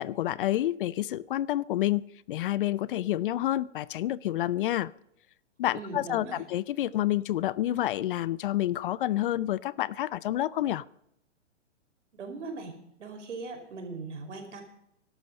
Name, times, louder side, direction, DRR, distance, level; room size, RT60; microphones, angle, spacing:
voice 1, 0.0-4.9 5.6-10.8, left 13 dB, 45° left, 0.5 m, -29 dB
voice 2, 5.7-6.4 12.1-12.7 13.0-14.6, right 3 dB, 75° right, 5.0 m, -39 dB
20.0 x 12.0 x 5.4 m
hypercardioid pair, 135°, 36 cm